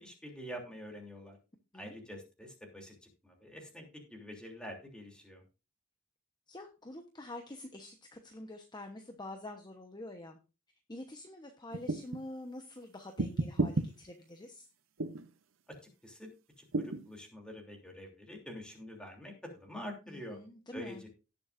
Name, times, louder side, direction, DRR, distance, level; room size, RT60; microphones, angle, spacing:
voice 1, 0.0-1.4 1.7-5.4 16.0-16.3 16.6-20.4 20.7-21.1, equal, 5° left, 1 dB, 3.1 m, -46 dB
voice 2, 6.5-10.4 10.9-14.7 20.1-21.0, left 1 dB, 20° left, 5 dB, 1.0 m, -46 dB
sound 1, 11.7-12.2 13.2-13.9 15.0-15.3 16.7-17.0, right 2 dB, 75° right, 0.8 m, -32 dB
18.0 x 7.0 x 2.6 m, 0.31 s
head